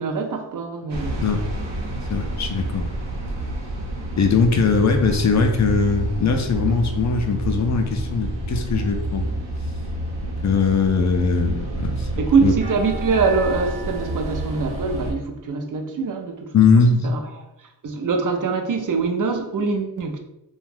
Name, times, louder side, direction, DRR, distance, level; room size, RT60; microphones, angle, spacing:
voice 1, 0.0-1.3 12.2-20.2, right 4 dB, 50° right, 4 dB, 0.5 m, -24 dB
sound 1, 0.9-15.1, right 1 dB, 85° right, 0.9 m, -29 dB
voice 2, 2.1-2.9 4.2-9.3 10.2-12.5 16.5-17.1, left 5 dB, 45° left, 4 dB, 0.4 m, -20 dB
2.5 x 2.3 x 3.2 m, 0.86 s
cardioid pair, 75°, 42 cm